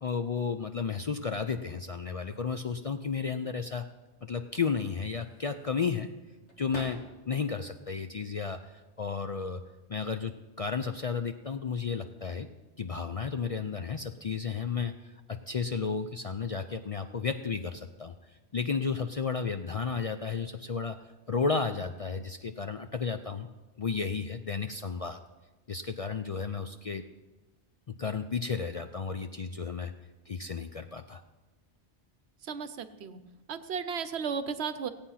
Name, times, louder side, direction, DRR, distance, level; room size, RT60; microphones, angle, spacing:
voice 1, 0.0-3.9 4.2-6.1 6.6-7.0 7.3-9.6 9.9-12.5 12.8-18.1 18.5-21.0 21.3-23.5 23.8-25.2 25.7-27.0 27.9-29.9 30.3-31.2, left 5 dB, 50° left, 8 dB, 0.4 m, -33 dB
sound 1, 5.0-7.5 7.9-8.8 9.7-10.0 10.4-11.1, left 1 dB, 80° left, 2.0 m, -49 dB
voice 2, 32.5-33.2 33.5-34.9, right 6 dB, 70° right, 12 dB, 1.0 m, -34 dB
16.5 x 8.7 x 5.7 m, 1.2 s
omnidirectional pair, 1.1 m